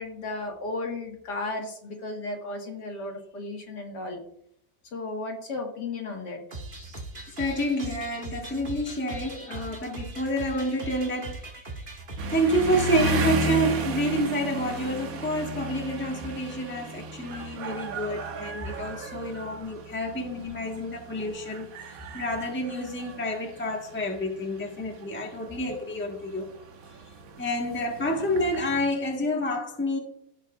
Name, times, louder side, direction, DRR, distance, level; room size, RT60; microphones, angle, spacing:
voice 1, 0.0-4.2 4.9-6.4, left 2 dB, 70° left, 1 dB, 2.2 m, -34 dB
sound 1, 6.5-13.3, right 2 dB, 30° right, 1.4 m, -40 dB
voice 2, 7.4-11.7 12.3-26.5 27.4-30.0, equal, 5° left, 1 dB, 1.2 m, -29 dB
sound 2, 12.2-28.9, right 3 dB, 60° right, 1.2 m, -35 dB
15.5 x 5.6 x 2.4 m, 0.71 s
omnidirectional pair, 1.9 m